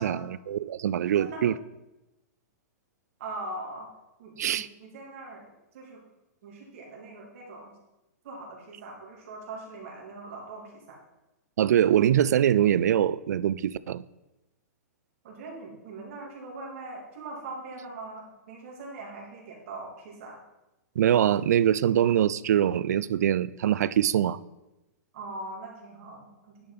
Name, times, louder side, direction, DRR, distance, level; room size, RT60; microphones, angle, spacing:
voice 1, 0.0-1.6 4.4-4.7 11.6-14.0 21.0-24.4, right 10 dB, 80° right, 0.3 m, -23 dB
voice 2, 1.1-1.5 3.2-3.9 4.2-5.5 5.7-6.0 6.4-7.7 8.2-11.0 15.2-20.4 25.1-26.7, right 2 dB, 55° right, 2.7 m, -41 dB
10.0 x 5.3 x 4.2 m
hypercardioid pair, 150°, 9 cm